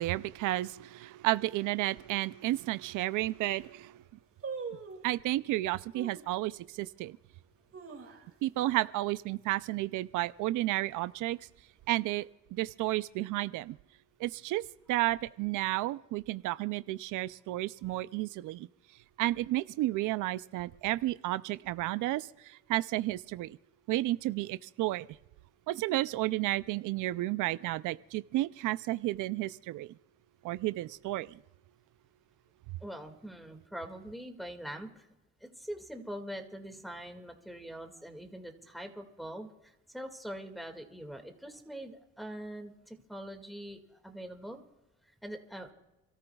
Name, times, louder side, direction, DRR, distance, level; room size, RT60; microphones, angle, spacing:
voice 1, 0.0-4.0 5.0-7.2 8.4-11.4 11.9-13.8 14.2-14.6 14.9-18.7 19.2-23.6 23.9-25.1 25.7-29.9 30.4-31.4, right 17 dB, 85° right, 15 dB, 0.5 m, -32 dB
sound 1, 2.4-2.5 3.1-3.2 3.4-3.8 4.4-5.2 5.9-6.3 6.8-6.9 7.5-8.6 8.9-9.0 9.3-9.7 10.1-10.5 11.1-11.9 12.1-12.2, right 5 dB, 45° right, 2.4 m, -43 dB
voice 2, 32.8-35.1 35.4-44.6 45.2-45.7, equal, ahead, 4 dB, 2.0 m, -43 dB
29.5 x 14.0 x 2.3 m, 1.0 s
cardioid pair, 90°, 30 cm